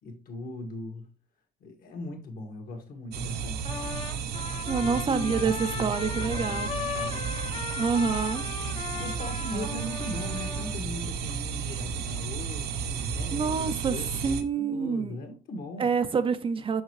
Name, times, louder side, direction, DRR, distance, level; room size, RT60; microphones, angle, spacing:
voice 1, 0.0-1.1 1.6-3.6 4.8-7.3 8.9-15.9, left 2 dB, 60° left, 1.8 m, -39 dB
sound 1, 3.1-14.4, right 6 dB, 80° right, 0.7 m, -33 dB
Trumpet, 3.6-10.8, left 6 dB, 30° left, 0.8 m, -37 dB
voice 2, 4.7-6.7 7.8-8.4 9.5-9.7 13.3-14.0 14.2-15.2 15.8-16.8, right 5 dB, 30° right, 0.5 m, -27 dB
6.5 x 5.4 x 3.1 m
cardioid pair, 110°, 17 cm